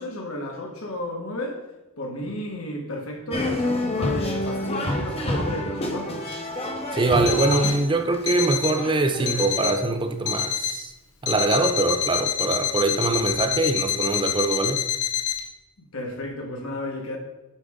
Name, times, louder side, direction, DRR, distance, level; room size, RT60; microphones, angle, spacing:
voice 1, 0.0-1.7 2.0-6.3 15.9-17.2, left 1 dB, 65° left, 1.4 m, -33 dB
sound 1, 3.3-9.6, left 1 dB, 25° left, 0.9 m, -28 dB
voice 2, 6.9-10.9 11.2-14.8, right 2 dB, 20° right, 0.5 m, -23 dB
Alarm, 7.3-7.8 8.3-8.8 9.3-9.8 10.3-10.8 11.3-15.4, left 9 dB, 80° left, 0.9 m, -27 dB
8.8 x 5.0 x 3.6 m
head